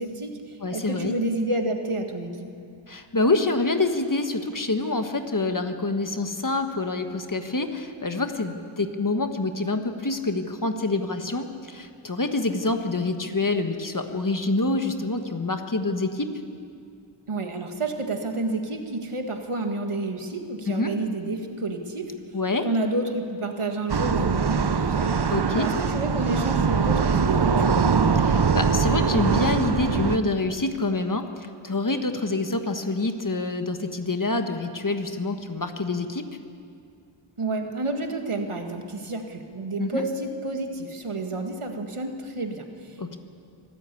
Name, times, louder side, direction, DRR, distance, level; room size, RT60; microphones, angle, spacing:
voice 1, 0.0-2.5 17.3-22.1 22.6-25.2 25.5-27.8 37.4-43.2, right 2 dB, 85° right, 4 dB, 2.0 m, -30 dB
voice 2, 0.6-1.1 2.9-16.3 20.6-20.9 22.3-22.7 25.3-25.7 28.1-36.3 39.8-40.0 43.0-43.2, left 2 dB, 40° left, 6 dB, 1.5 m, -26 dB
sound 1, 23.9-30.2, right 5 dB, 50° right, 0.9 m, -22 dB
24.0 x 14.0 x 8.5 m, 2.4 s
wide cardioid pair, 60°, 49 cm